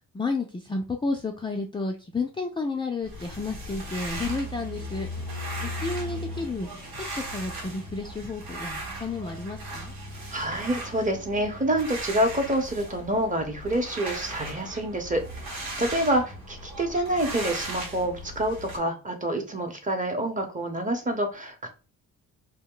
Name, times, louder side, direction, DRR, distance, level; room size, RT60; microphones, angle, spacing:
voice 1, 0.1-5.1 5.6-6.7 7.2-9.9 15.7-15.8, left 3 dB, 15° left, 0.4 m, -31 dB
sound 1, 3.0-18.8, right 1 dB, 80° right, 1.1 m, -37 dB
voice 2, 10.3-21.7, right 1 dB, 20° right, 0.9 m, -27 dB
2.2 x 2.1 x 3.7 m
supercardioid pair, 70°, 36 cm